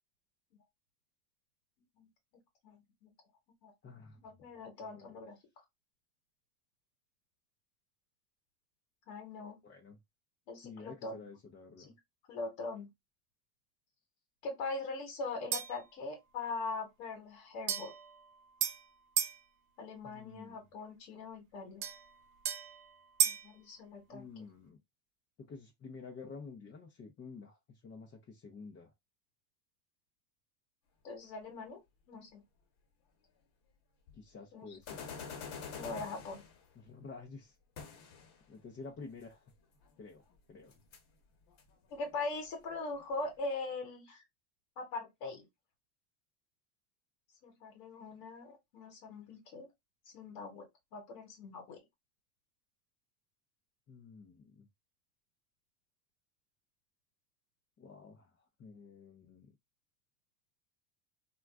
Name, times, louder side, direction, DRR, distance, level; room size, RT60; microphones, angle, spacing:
voice 1, 2.6-3.1 3.6-3.7 4.2-5.4 9.1-9.6 10.5-11.2 12.3-12.9 14.4-17.9 19.8-21.8 23.2-24.2 31.0-31.8 32.1-32.4 34.5-34.7 35.7-36.4 41.9-44.2 44.8-45.5 47.4-49.7 50.0-51.8, left 3 dB, 80° left, 1.3 m, -41 dB
voice 2, 3.8-4.5 4.8-5.3 9.6-10.0 10.6-11.9 20.0-20.7 24.1-24.8 25.4-28.9 34.1-35.1 36.8-37.5 38.5-39.4 40.0-40.7 53.9-54.7 57.8-59.5, left 4 dB, 25° left, 0.6 m, -50 dB
sound 1, 15.5-15.9 17.7-19.4 21.8-23.5, right 9 dB, 50° right, 0.7 m, -35 dB
sound 2, 34.1-34.2 34.8-36.6 37.8-38.4 39.8-39.9 40.3-40.4 40.7-41.0 41.5-43.3, left 6 dB, 55° left, 1.1 m, -46 dB
2.4 x 2.2 x 3.4 m
supercardioid pair, 100°, 49 cm